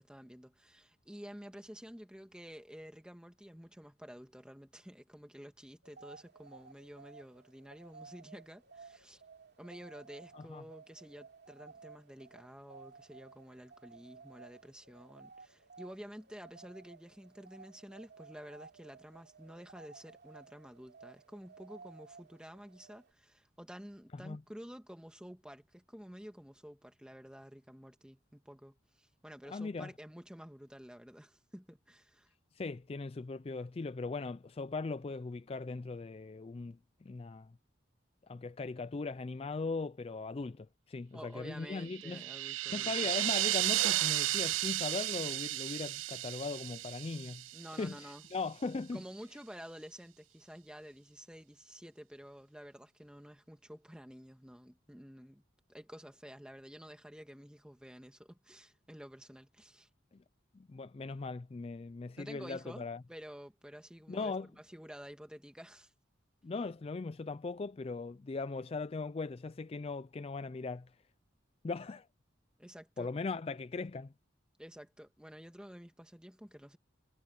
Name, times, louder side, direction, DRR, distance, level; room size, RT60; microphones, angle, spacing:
voice 1, 0.0-9.2 9.6-32.3 41.1-43.1 47.5-48.2 48.9-55.4 55.7-59.9 62.2-65.9 72.6-73.1 74.6-76.8, equal, 5° right, 1.9 m, -51 dB
sound 1, 5.8-23.1, right 4 dB, 55° right, 3.1 m, -56 dB
voice 2, 29.5-29.9 32.5-37.5 38.3-42.2 42.7-47.4 47.8-49.0 60.1-60.2 60.5-63.0 64.1-64.5 66.4-70.9 71.6-72.1 73.0-74.1, left 3 dB, 30° left, 0.3 m, -39 dB
sound 2, 41.8-48.0, right 16 dB, 80° right, 0.4 m, -34 dB
head